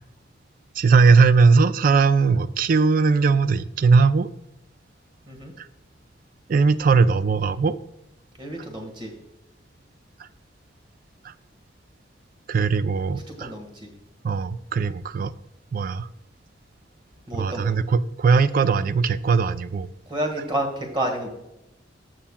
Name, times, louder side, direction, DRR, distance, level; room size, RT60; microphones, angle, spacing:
voice 1, 0.8-4.3 5.6-5.7 6.5-7.7 12.5-13.5 14.2-15.3 15.7-16.1 17.3-19.9, right 4 dB, 45° right, 13 dB, 0.3 m, -19 dB
voice 2, 8.4-9.1 13.4-13.9 17.3-17.7 20.1-21.3, right 1 dB, 25° right, 3 dB, 1.6 m, -29 dB
14.0 x 5.7 x 2.3 m, 0.87 s
head